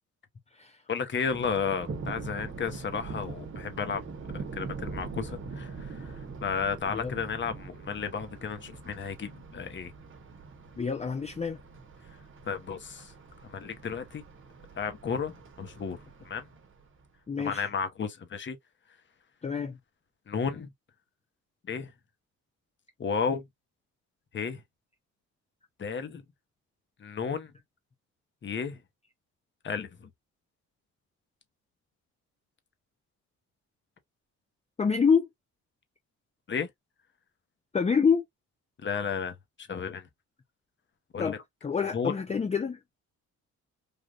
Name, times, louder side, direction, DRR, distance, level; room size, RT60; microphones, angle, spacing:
voice 1, 0.9-4.0 4.3-9.9 12.5-13.1 13.4-14.2 14.8-16.0 16.2-16.5 17.4-18.6 20.3-20.7 21.7-21.9 23.0-23.5 24.3-24.6 25.8-26.2 27.0-27.5 28.4-28.8 29.6-30.1 36.5-36.7 38.8-40.0 41.1-41.4 41.9-42.1, left 6 dB, 40° left, 0.9 m, -33 dB
Thunder, 1.2-17.1, right 4 dB, 40° right, 1.0 m, -43 dB
voice 2, 10.8-11.6 17.3-17.7 19.4-19.8 34.8-35.3 37.7-38.2 41.2-42.8, left 6 dB, 20° left, 0.5 m, -27 dB
3.4 x 2.5 x 2.4 m
cardioid pair, 90°, 30 cm